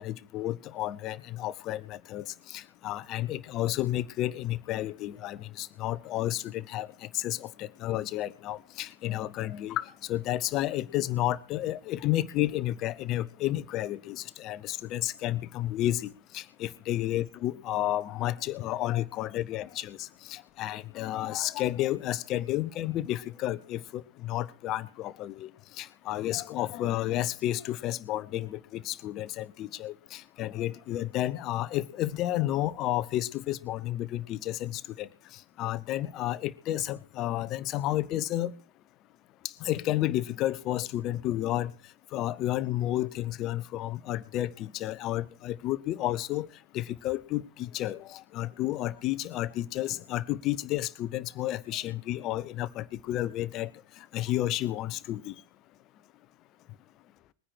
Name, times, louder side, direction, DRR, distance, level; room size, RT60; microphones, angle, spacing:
voice 1, 0.0-6.9 7.1-25.5 25.8-35.1 35.6-38.5 39.6-41.7 42.1-46.5 46.7-53.7 54.1-55.3, left 14 dB, 35° left, 1.0 m, -31 dB
21.5 x 10.0 x 4.8 m
figure-of-eight pair, 90°, 0 cm